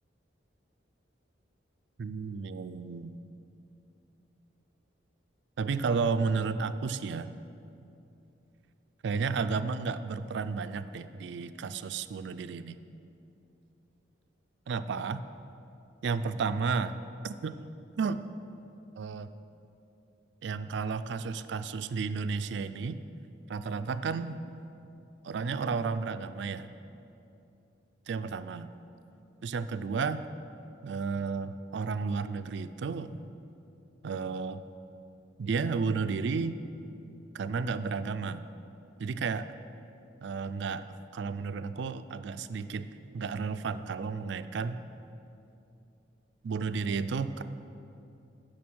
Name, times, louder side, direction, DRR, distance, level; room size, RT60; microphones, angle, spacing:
voice 1, 2.0-3.2 5.6-7.3 9.0-12.8 14.7-15.2 16.0-17.0 17.2-18.2 19.0-19.3 20.4-23.0 23.5-24.4 25.2-26.7 28.1-28.7 29.4-30.2 30.8-33.1 34.0-34.6 35.4-36.6 37.3-38.4 39.0-39.5 40.2-40.8 41.1-42.9 43.1-44.8 46.4-47.4, right 5 dB, 70° right, 11 dB, 0.4 m, -32 dB
9.5 x 6.5 x 6.1 m, 2.7 s
head